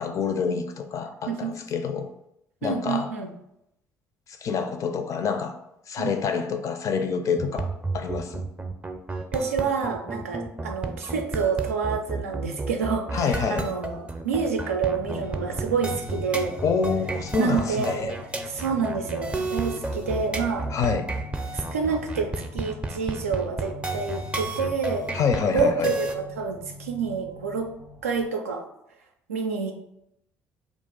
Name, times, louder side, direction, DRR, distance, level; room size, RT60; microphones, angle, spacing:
voice 1, 0.0-2.1 2.6-3.1 4.3-5.6 5.9-7.7 7.9-8.5 13.1-13.7 16.6-18.1 20.7-21.1 25.1-25.9, left 5 dB, 45° left, 7 dB, 0.4 m, -27 dB
voice 2, 1.3-1.6 2.6-3.3 6.0-6.3 9.3-16.6 17.4-18.2 18.4-20.7 21.5-25.1 25.5-27.8 28.0-28.7 29.3-29.7, right 5 dB, 90° right, 4 dB, 0.3 m, -28 dB
sound 1, 7.4-26.2, right 2 dB, 15° right, 0.4 m, -32 dB
sound 2, 14.9-28.2, left 4 dB, 80° left, 0.9 m, -43 dB
2.4 x 2.3 x 3.7 m, 0.80 s
hypercardioid pair, 55°, 7 cm